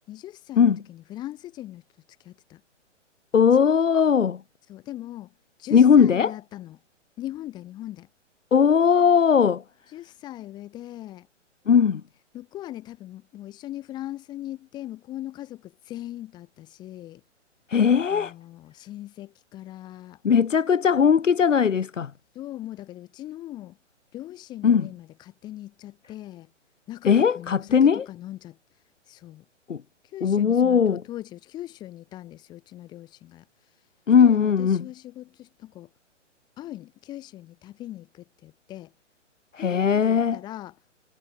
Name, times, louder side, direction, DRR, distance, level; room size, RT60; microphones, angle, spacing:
voice 1, 0.1-1.8 2.2-2.6 3.6-3.8 4.7-5.3 5.6-6.8 7.2-8.1 9.9-11.3 12.3-17.2 18.1-20.2 22.3-23.8 24.1-26.5 26.9-28.6 29.1-29.4 30.1-33.4 34.2-35.9 36.6-38.9 39.6-40.8, left 14 dB, 10° left, 0.9 m, -40 dB
voice 2, 3.3-4.4 5.7-6.4 8.5-9.6 11.7-12.0 17.7-18.3 20.2-22.1 24.6-24.9 27.0-28.0 29.7-29.8 30.2-31.0 34.1-34.9 39.5-40.4, left 7 dB, 80° left, 0.6 m, -19 dB
figure-of-eight pair, 125°, 37 cm